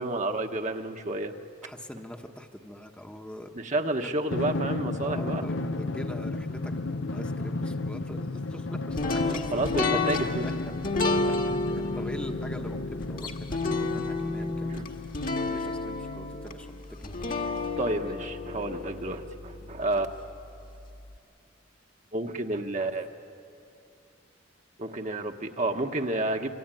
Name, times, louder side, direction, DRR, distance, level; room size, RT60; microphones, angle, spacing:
voice 1, 0.0-1.3 3.5-5.4 9.5-10.5 17.7-20.1 22.1-23.1 24.8-26.5, right 2 dB, 40° right, 4 dB, 1.3 m, -30 dB
voice 2, 1.6-3.5 4.0-4.1 5.0-10.5 10.8-15.1 15.5-17.5 19.6-19.7, equal, 5° left, 3 dB, 1.1 m, -44 dB
Drum, 4.3-15.3, left 2 dB, 85° left, 0.8 m, -34 dB
sound 1, 9.0-20.0, left 3 dB, 50° left, 1.7 m, -31 dB
26.5 x 24.5 x 9.2 m, 2.6 s
head